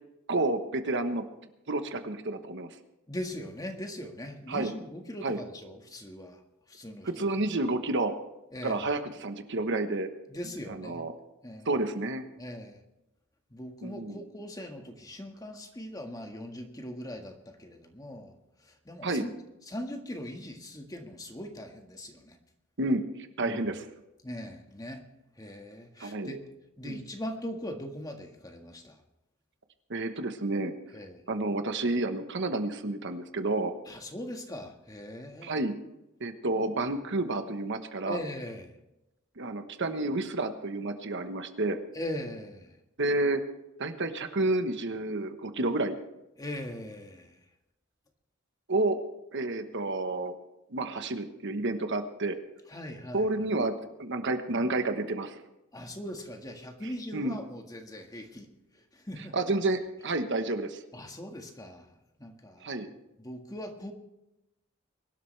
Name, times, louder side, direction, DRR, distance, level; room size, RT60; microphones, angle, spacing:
voice 1, 0.3-1.2 1.7-2.7 4.5-4.7 5.2-5.4 7.0-8.1 8.6-10.1 10.7-11.1 11.6-12.2 13.8-14.2 19.0-19.2 22.8-23.8 26.0-26.3 26.8-27.0 29.9-30.7 31.3-33.7 35.4-35.7 36.2-38.2 39.4-41.8 43.0-43.4 43.8-46.0 48.7-49.0 49.3-50.3 50.7-52.4 53.1-55.4 57.1-57.4 59.3-60.8 62.6-62.9, right 2 dB, 60° right, 8 dB, 1.2 m, -30 dB
voice 2, 3.1-7.3 8.5-8.9 10.3-11.0 11.4-11.7 12.4-12.8 13.5-19.3 19.6-22.4 23.4-23.7 24.2-25.0 25.3-26.5 26.8-29.0 30.9-31.2 33.8-35.5 38.0-38.7 41.9-42.8 46.4-47.5 52.7-53.3 55.7-58.5 58.7-59.4 60.9-61.9 62.2-62.8 63.2-63.9, left 1 dB, 20° left, 4 dB, 1.7 m, -40 dB
23.5 x 12.5 x 3.4 m, 0.91 s
head